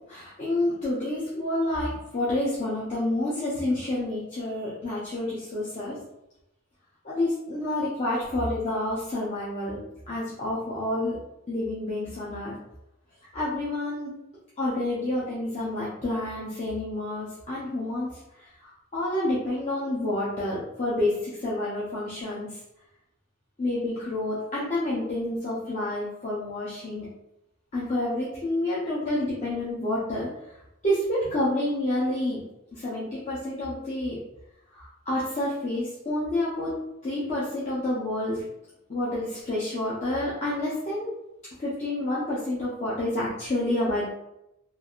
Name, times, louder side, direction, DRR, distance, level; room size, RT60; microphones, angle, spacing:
voice 1, 0.1-6.0 7.0-9.8 10.1-11.2 11.5-12.6 13.3-14.1 14.6-18.1 18.6-22.5 23.6-27.0 27.7-30.3 30.8-32.4 32.7-34.2 34.7-36.8 37.0-38.4 38.9-41.1 41.6-44.0, left 1 dB, 35° left, -8 dB, 0.6 m, -29 dB
3.2 x 2.4 x 2.4 m, 0.87 s
head